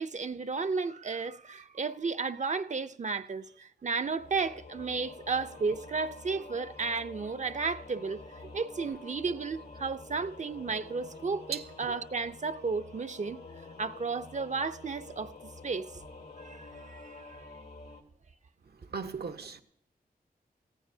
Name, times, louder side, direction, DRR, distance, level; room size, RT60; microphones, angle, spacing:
voice 1, 0.0-8.2 8.5-13.4 13.8-15.9 16.4-17.4, right 4 dB, 45° right, 0.6 m, -33 dB
Singing / Musical instrument, 4.2-18.0, left 3 dB, 80° left, 2.1 m, -48 dB
voice 2, 8.4-8.9 11.5-12.0 18.9-19.6, right 6 dB, 85° right, 1.1 m, -39 dB
19.0 x 15.5 x 2.7 m
wide cardioid pair, 105°, 16 cm